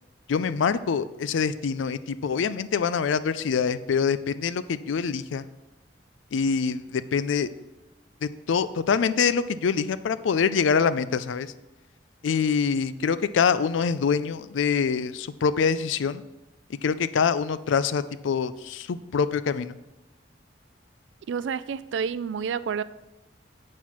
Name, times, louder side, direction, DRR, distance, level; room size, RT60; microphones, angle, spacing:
voice 1, 0.3-5.4 6.3-7.5 8.2-11.5 12.2-16.2 16.8-19.8, left 6 dB, 85° left, 15 dB, 0.4 m, -25 dB
voice 2, 21.3-22.8, right 6 dB, 75° right, 16 dB, 0.3 m, -29 dB
8.2 x 4.3 x 5.9 m, 0.99 s
head